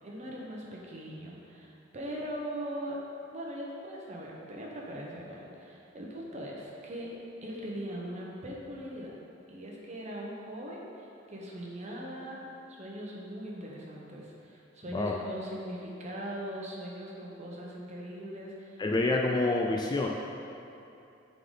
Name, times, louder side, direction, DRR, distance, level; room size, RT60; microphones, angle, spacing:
voice 1, 0.0-3.0 3.3-7.1 7.4-9.2 9.5-12.4 12.7-18.8, equal, 35° right, -3 dB, 0.9 m, -40 dB
voice 2, 18.8-20.1, left 2 dB, 20° left, 0 dB, 0.3 m, -27 dB
8.3 x 3.9 x 3.8 m, 2.8 s
head